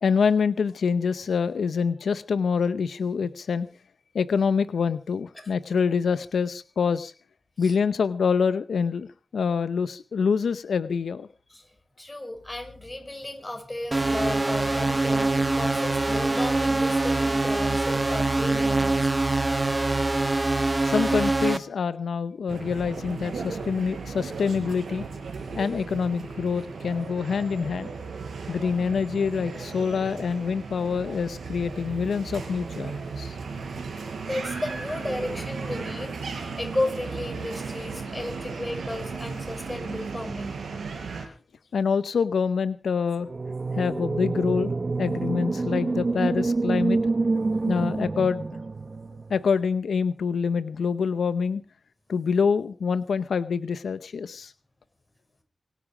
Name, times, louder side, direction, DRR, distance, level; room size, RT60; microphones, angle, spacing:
voice 1, 0.0-3.7 4.1-7.1 7.6-11.3 20.8-25.0 25.5-27.9 28.5-33.4 41.7-43.3 43.7-44.7 45.0-47.0 47.7-48.4 49.3-51.6 52.1-54.5, left 5 dB, 90° left, 13 dB, 0.7 m, -26 dB
voice 2, 12.0-19.2 34.3-40.6, left 1 dB, 20° left, 5 dB, 6.1 m, -34 dB
sound 1, 13.9-21.6, right 2 dB, 25° right, 1.5 m, -24 dB
sound 2, 22.5-41.3, right 4 dB, 90° right, 4.8 m, -36 dB
sound 3, 43.3-49.4, right 3 dB, 40° right, 1.0 m, -27 dB
25.0 x 10.0 x 5.0 m, 0.39 s
wide cardioid pair, 80°, 0 cm